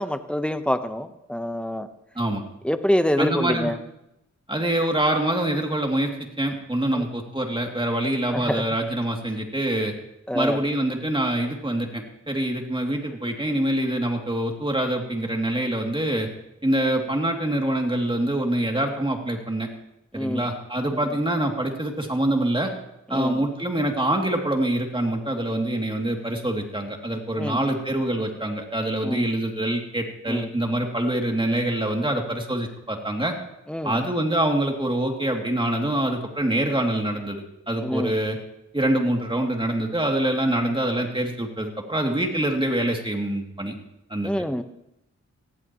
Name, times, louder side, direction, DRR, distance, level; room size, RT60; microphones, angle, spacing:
voice 1, 0.0-1.9 2.6-3.8 6.9-7.1 8.3-8.6 10.3-10.6 20.1-20.5 23.1-23.4 27.4-27.6 29.0-29.3 30.3-30.5 33.7-34.0 37.8-38.2 44.2-44.6, left 1 dB, 5° left, 9 dB, 1.1 m, -26 dB
voice 2, 3.2-3.7 4.5-6.1 6.4-9.9 10.3-16.3 16.6-19.7 20.1-22.7 23.1-33.3 33.8-38.4 38.7-43.7 44.1-44.3, right 1 dB, 15° right, 1 dB, 2.8 m, -25 dB
19.5 x 15.0 x 3.1 m, 0.85 s
cardioid pair, 60°, 30 cm